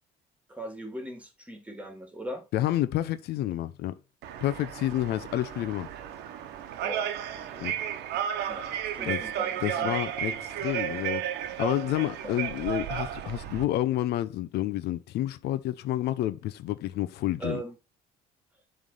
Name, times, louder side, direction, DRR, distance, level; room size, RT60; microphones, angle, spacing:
voice 1, 0.5-2.4 6.8-7.7 8.5-9.9 12.2-12.4 17.4-17.7, right 1 dB, 10° right, 2.2 m, -39 dB
voice 2, 2.5-3.9 4.4-5.9 7.6-7.7 9.0-9.2 9.6-11.3 11.6-17.6, left 13 dB, 75° left, 0.7 m, -29 dB
sound 1, 4.2-13.6, right 10 dB, 85° right, 1.0 m, -33 dB
7.2 x 3.4 x 5.4 m
cardioid pair, 110°, 17 cm